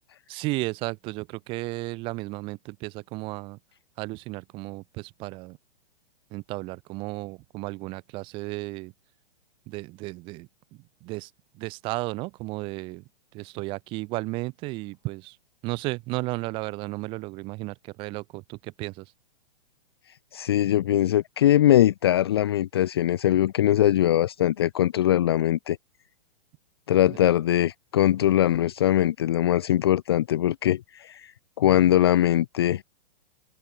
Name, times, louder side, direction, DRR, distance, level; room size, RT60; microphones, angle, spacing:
voice 1, 0.3-3.6 4.0-5.6 6.3-8.9 9.7-10.5 11.0-11.3 11.6-13.0 13.3-15.4 15.6-19.0 27.1-27.2, right 23 dB, 15° right, 1.7 m, -34 dB
voice 2, 20.3-25.8 26.9-31.3 31.6-32.8, left 12 dB, 25° left, 0.6 m, -21 dB
hypercardioid pair, 180°, 30 cm